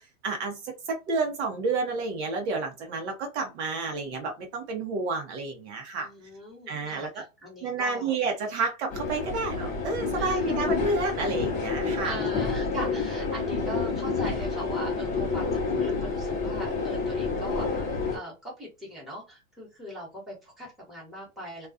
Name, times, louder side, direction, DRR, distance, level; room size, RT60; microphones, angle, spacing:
voice 1, 0.0-6.1 6.7-7.2 7.6-12.2, right 3 dB, 50° right, 0.8 m, -30 dB
voice 2, 6.0-8.1 10.1-10.4 12.0-21.7, equal, ahead, 1.1 m, -40 dB
sound 1, 8.9-18.2, left 4 dB, 20° left, 0.7 m, -29 dB
2.4 x 2.3 x 2.4 m
hypercardioid pair, 140°, 43 cm